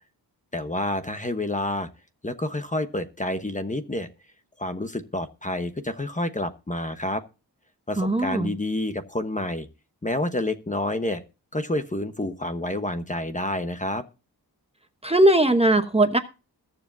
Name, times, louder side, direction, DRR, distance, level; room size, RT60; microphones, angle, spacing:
voice 1, 0.5-1.9 2.2-4.1 4.6-7.2 7.9-9.7 10.0-11.2 11.5-14.0, left 1 dB, 20° left, 8 dB, 1.1 m, -28 dB
voice 2, 8.0-8.5 15.0-16.2, right 1 dB, 15° right, 7 dB, 1.0 m, -19 dB
21.5 x 7.3 x 2.7 m, 0.30 s
wide cardioid pair, 145°, 40 cm